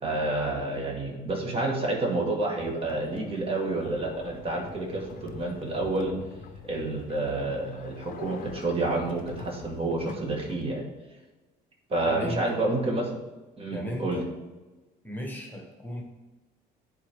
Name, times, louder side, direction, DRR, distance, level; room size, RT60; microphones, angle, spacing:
voice 1, 0.0-6.2 6.7-10.8 11.9-13.2 13.6-14.2, right 2 dB, 35° right, -1 dB, 1.6 m, -29 dB
sound 1, 2.6-10.6, left 5 dB, 55° left, 0.6 m, -45 dB
voice 2, 12.0-12.5 13.7-14.3 15.0-16.0, equal, 10° left, 0 dB, 1.3 m, -35 dB
10.5 x 4.1 x 3.6 m, 1.2 s
cardioid pair, 110°, 17 cm